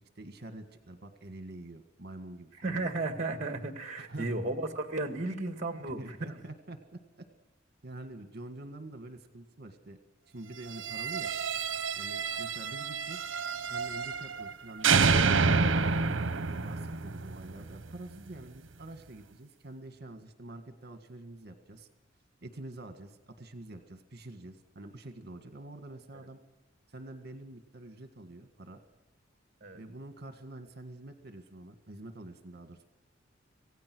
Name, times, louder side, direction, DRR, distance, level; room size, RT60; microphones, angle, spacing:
voice 1, 0.2-2.9 4.0-4.3 6.0-6.8 7.8-10.0 10.3-11.3 12.0-13.3 13.6-15.1 16.2-21.9 22.4-26.4 26.9-28.8 29.7-32.9, right 2 dB, 55° right, 7 dB, 1.8 m, -46 dB
voice 2, 2.6-6.4 29.6-29.8, right 2 dB, 35° right, 7 dB, 1.7 m, -34 dB
sound 1, 10.7-14.5 14.8-17.9, right 4 dB, 75° right, 0.9 m, -28 dB
26.5 x 17.0 x 6.2 m, 0.97 s
head